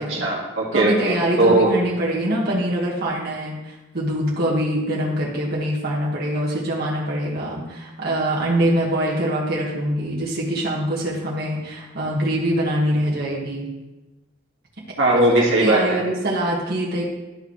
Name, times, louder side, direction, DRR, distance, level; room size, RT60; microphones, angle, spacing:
voice 1, 0.0-1.7 15.0-16.0, right 1 dB, 85° right, -3 dB, 1.9 m, -19 dB
voice 2, 0.7-13.7 15.6-17.0, right 1 dB, 55° right, -5 dB, 1.7 m, -24 dB
12.0 x 5.0 x 3.2 m, 1.1 s
head